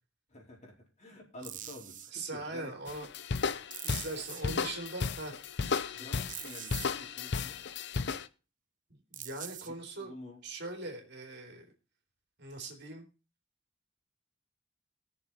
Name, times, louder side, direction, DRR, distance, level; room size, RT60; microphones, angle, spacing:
voice 1, 0.3-2.7 4.4-4.7 5.9-7.6 9.6-10.4, left 1 dB, 40° left, -1 dB, 4.2 m, -49 dB
sound 1, 1.4-2.1 3.7-4.4 6.3-6.9 9.1-9.7, right 11 dB, 45° right, 0.9 m, -43 dB
voice 2, 2.1-3.1 3.8-5.3 8.9-10.1 10.4-11.6 12.4-13.1, right 2 dB, 60° right, 3 dB, 3.0 m, -41 dB
sound 2, 2.9-8.3, left 5 dB, 65° left, 0.7 m, -34 dB
19.5 x 6.9 x 4.3 m, 0.32 s
head